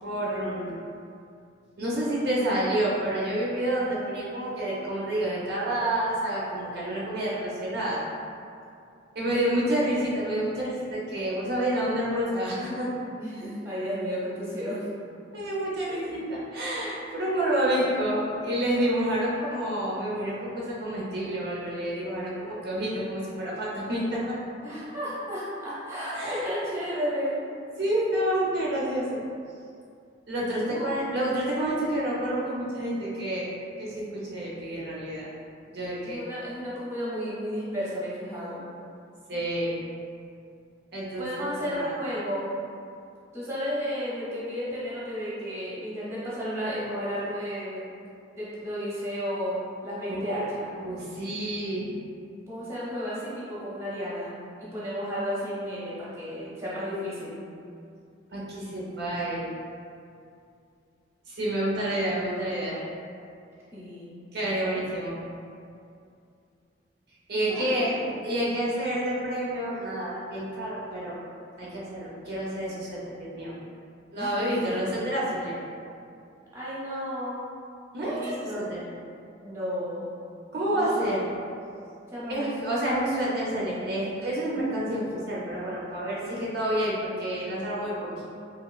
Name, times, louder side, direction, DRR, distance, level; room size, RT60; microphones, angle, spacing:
voice 1, 0.0-0.8 1.8-8.0 9.2-12.9 15.3-24.4 26.1-26.5 27.8-29.2 30.3-33.5 33.8-35.3 35.7-36.2 39.3-39.8 40.9-42.0 50.1-50.4 50.8-51.9 58.3-59.5 61.3-62.8 64.3-65.2 67.3-67.9 68.2-71.2 71.6-73.5 74.1-75.6 77.9-78.8 80.5-81.3 82.3-88.2, right 1 dB, 55° right, -6 dB, 0.5 m, -29 dB
voice 2, 9.2-9.7 13.1-14.8 15.8-16.2 24.6-27.4 30.5-30.8 36.0-38.6 41.2-42.5 43.3-47.9 48.4-50.7 52.5-54.3 54.7-57.4 63.7-64.1 64.6-64.8 67.5-68.2 74.2-74.7 76.5-77.4 78.0-78.7 79.4-80.0 80.7-81.1 82.1-82.7, equal, 15° right, -9 dB, 0.7 m, -33 dB
2.9 x 2.8 x 2.3 m, 2.5 s
head